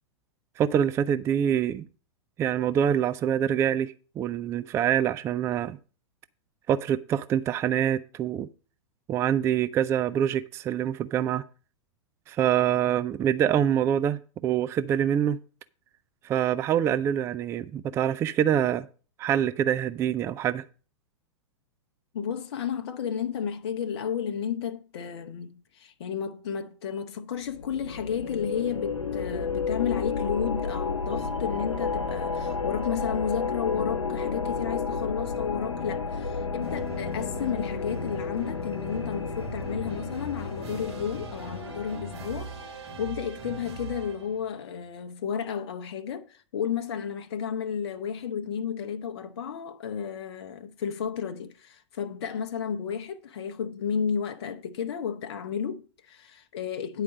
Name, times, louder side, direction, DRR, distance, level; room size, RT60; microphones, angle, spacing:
voice 1, 0.6-1.9 2.4-5.8 6.7-8.5 9.1-11.4 12.3-15.4 16.2-18.9 19.2-20.6, right 9 dB, 15° right, 0.3 m, -25 dB
voice 2, 22.1-57.0, left 7 dB, 55° left, 0.7 m, -32 dB
sound 1, 27.5-42.9, left 4 dB, 80° left, 1.1 m, -32 dB
sound 2, 36.6-44.5, right 3 dB, 60° right, 3.2 m, -42 dB
9.7 x 4.9 x 6.3 m
figure-of-eight pair, 100°, 16 cm